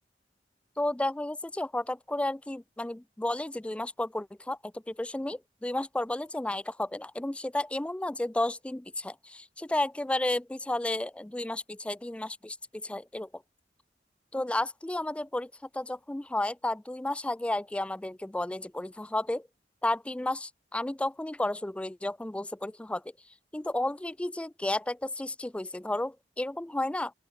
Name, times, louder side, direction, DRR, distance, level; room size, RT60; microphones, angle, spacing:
voice 1, 0.8-13.4 14.3-19.5 19.8-23.0 23.5-27.1, left 1 dB, 5° left, 0.3 m, -32 dB
open air
head